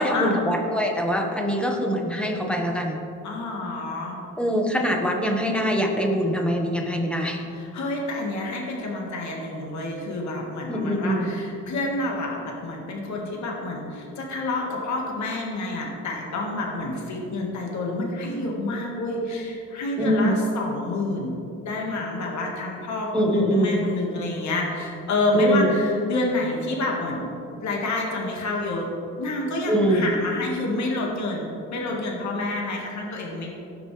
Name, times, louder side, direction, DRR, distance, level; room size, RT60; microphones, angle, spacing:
voice 1, 0.0-3.0 4.4-7.4 10.7-11.3 20.0-20.3 23.1-23.8 25.3-25.7 29.7-30.1, equal, 5° left, 1 dB, 1.6 m, -23 dB
voice 2, 3.2-4.2 7.5-21.4 21.6-27.3 27.6-28.9 29.2-33.5, left 2 dB, 70° left, -1 dB, 1.9 m, -28 dB
17.0 x 6.0 x 3.4 m, 2.6 s
cardioid pair, 90°, 30 cm